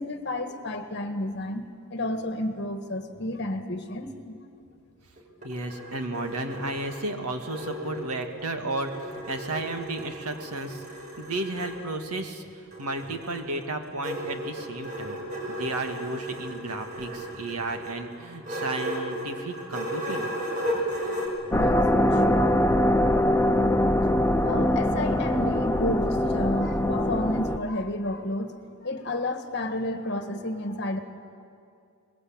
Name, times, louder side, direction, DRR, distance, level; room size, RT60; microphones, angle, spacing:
voice 1, 0.0-1.6 1.9-4.4 20.7-20.8 21.5-21.8 22.2-22.6 24.1-24.2 24.4-31.0, left 1 dB, 50° left, 7 dB, 1.6 m, -31 dB
sound 1, 5.2-8.5 8.8-11.8 12.7-21.3, right 1 dB, 35° right, 5.8 m, -35 dB
voice 2, 5.4-10.8 11.2-15.2 15.5-20.3, right 2 dB, 90° right, 6 dB, 2.0 m, -33 dB
sound 2, 21.5-27.6, left 1 dB, 10° left, 0.6 m, -23 dB
22.5 x 21.0 x 8.8 m, 2.4 s
head